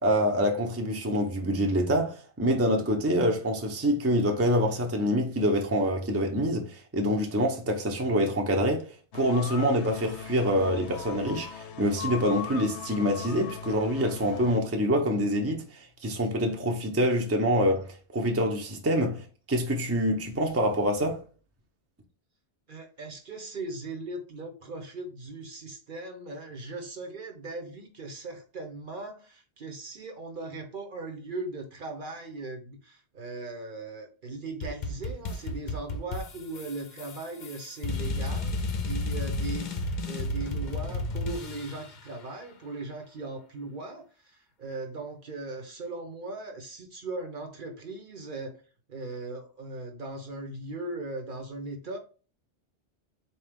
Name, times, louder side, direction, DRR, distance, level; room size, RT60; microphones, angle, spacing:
voice 1, 0.0-8.9 9.1-21.2, equal, 15° right, 0.6 m, -26 dB
sound 1, 9.1-14.6, left 7 dB, 85° left, 0.9 m, -39 dB
voice 2, 22.7-48.6 48.9-52.0, right 2 dB, 55° right, 0.9 m, -38 dB
sound 2, 34.6-42.0, left 2 dB, 50° left, 0.7 m, -32 dB
4.1 x 2.9 x 3.4 m
omnidirectional pair, 1.1 m